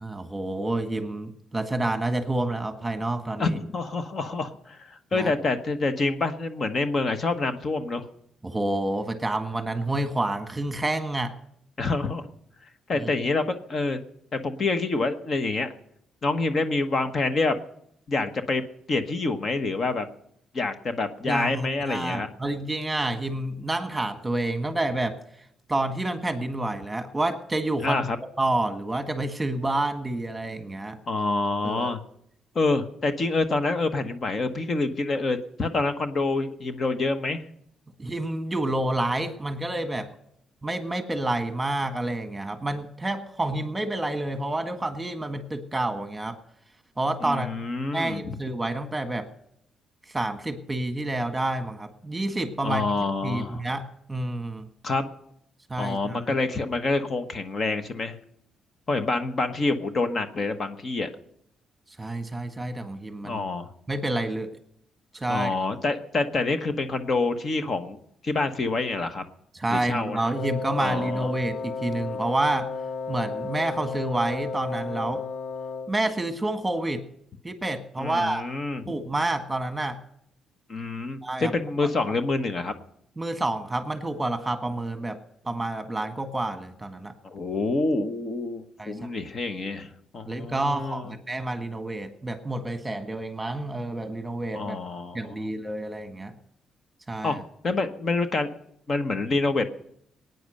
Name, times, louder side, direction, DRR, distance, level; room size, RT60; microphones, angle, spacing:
voice 1, 0.0-3.6 5.1-5.3 8.4-11.3 12.9-13.1 21.2-25.2 25.7-28.0 28.4-31.0 31.6-32.0 38.0-40.1 40.6-46.4 47.0-47.5 47.9-49.3 50.1-52.9 53.2-54.7 55.7-56.3 62.0-63.4 63.9-64.5 65.1-65.5 69.5-72.7 73.1-75.2 75.9-77.0 77.4-78.4 78.9-80.0 81.2-81.5 81.8-81.9 83.2-87.1 88.8-89.1 90.3-94.8 95.1-96.4 97.1-97.4, right 2 dB, 15° right, 8 dB, 1.7 m, -29 dB
voice 2, 3.4-8.0 11.8-12.3 12.9-14.0 14.3-15.7 16.2-17.6 18.1-18.6 18.9-20.0 20.5-22.3 27.8-28.2 31.1-32.0 32.5-37.4 47.2-48.4 52.6-53.6 54.8-55.1 55.8-58.2 58.9-61.1 63.2-63.7 65.3-68.0 68.2-69.2 69.7-70.3 70.8-71.3 78.0-78.8 80.7-82.7 87.2-91.1 94.5-95.5 97.2-98.5 98.9-99.6, left 3 dB, 45° left, 8 dB, 1.2 m, -27 dB
Wind instrument woodwind instrument, 70.3-76.1, left 4 dB, 75° left, 0.6 m, -33 dB
19.0 x 9.5 x 6.6 m, 0.72 s
cardioid pair, 90°, 0 cm